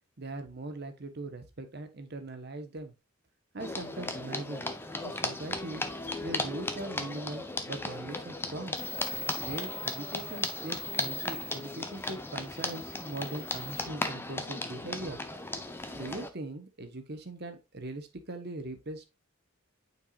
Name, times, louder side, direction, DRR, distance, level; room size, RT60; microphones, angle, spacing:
voice 1, 0.2-2.9 3.5-4.6 5.0-5.8 6.2-8.8 9.4-15.2 15.9-19.0, right 2 dB, 50° right, 1.1 m, -40 dB
sound 1, 3.6-16.3, left 2 dB, 10° left, 0.6 m, -36 dB
sound 2, 8.8-13.8, left 3 dB, 30° left, 1.0 m, -41 dB
8.6 x 4.6 x 2.4 m
head